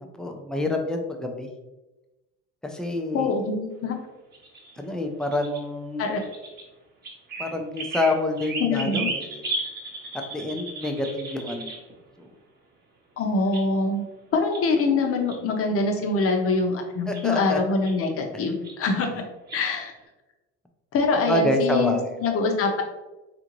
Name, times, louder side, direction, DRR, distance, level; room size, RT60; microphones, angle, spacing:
voice 1, 0.2-1.5 2.7-3.4 4.8-6.2 7.4-9.4 10.3-11.7 12.2-12.3 17.1-17.6 18.3-18.6 21.3-22.4, left 1 dB, ahead, 3 dB, 0.3 m, -27 dB
voice 2, 3.1-4.0 6.0-6.2 8.6-9.1 13.2-14.0 14.3-19.2 19.5-19.9 20.9-22.8, left 3 dB, 50° left, 3 dB, 0.7 m, -24 dB
sound 1, 4.3-5.6 6.2-6.6 7.0-11.9 13.2-13.6 13.9-14.0 14.5-15.0 15.3-15.4 16.0-16.3 17.1-17.5 17.8-18.0 18.6-18.9 19.5-19.6, right 2 dB, 35° right, 0.8 m, -35 dB
3.6 x 2.5 x 3.0 m, 1.1 s
cardioid pair, 120°, 30 cm